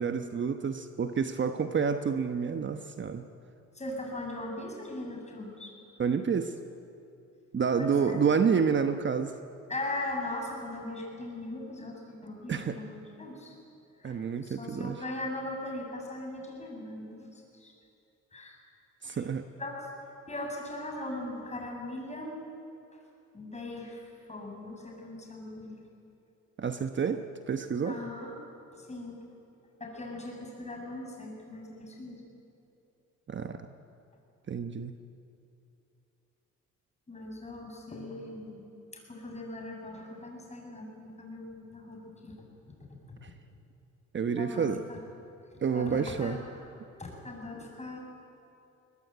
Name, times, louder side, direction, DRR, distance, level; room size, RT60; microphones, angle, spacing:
voice 1, 0.0-3.2 6.0-6.5 7.5-9.4 12.5-12.8 14.0-15.0 19.0-19.5 26.6-28.0 33.3-33.7 34.5-35.0 43.2-43.3 44.1-44.8 45.6-46.4, right 6 dB, 40° right, 8 dB, 1.1 m, -29 dB
voice 2, 3.7-5.7 7.7-8.2 9.7-13.5 14.0-17.3 17.5-17.7 18.3-18.6 19.0-19.2 19.6-19.8 20.3-22.4 23.3-25.8 27.8-28.4 28.7-29.2 29.8-32.2 37.1-38.6 38.9-42.3 44.4-45.0 45.5-46.6 47.0-48.0, left 2 dB, 20° left, 0 dB, 7.9 m, -39 dB
23.0 x 20.5 x 9.2 m, 2.7 s
cardioid pair, 90°, 30 cm